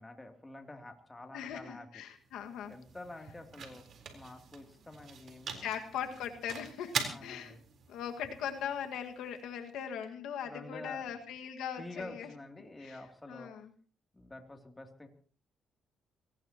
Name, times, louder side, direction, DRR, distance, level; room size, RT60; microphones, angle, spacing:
voice 1, 0.0-2.0 2.7-3.8 4.1-5.7 7.1-7.6 10.4-11.2 11.8-13.5 14.1-15.1, left 2 dB, 15° left, 4 dB, 2.9 m, -48 dB
voice 2, 1.3-2.7 5.6-7.6 7.9-12.3 12.8-13.0 13.3-13.7, left 8 dB, 85° left, 5 dB, 1.8 m, -40 dB
sound 1, 2.0-10.1, right 6 dB, 60° right, 4.0 m, -44 dB
24.0 x 19.0 x 3.0 m, 0.42 s
cardioid pair, 90°, 0 cm